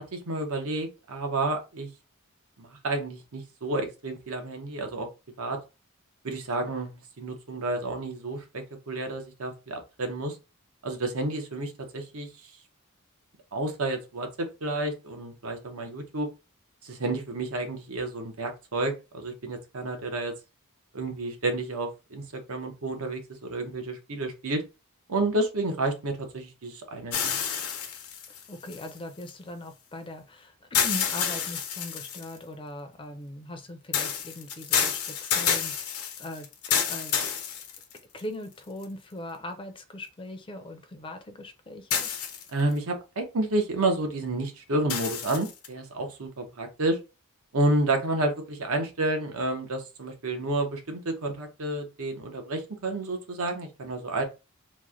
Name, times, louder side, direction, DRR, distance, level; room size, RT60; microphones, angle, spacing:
voice 1, 0.1-1.9 2.6-5.1 5.4-5.6 6.2-10.4 10.8-12.3 13.5-16.3 16.8-20.3 20.9-24.6 25.1-27.4 42.5-47.0 47.5-54.2, right 2 dB, 75° right, 0.8 m, -30 dB
sound 1, 27.1-29.3 30.7-32.4 33.9-38.2 38.8-38.9 41.9-42.7 44.9-45.7, left 7 dB, 75° left, 0.7 m, -29 dB
voice 2, 28.5-36.5 36.8-37.2 38.1-42.1, left 1 dB, 25° left, 0.5 m, -40 dB
3.1 x 2.1 x 3.6 m
head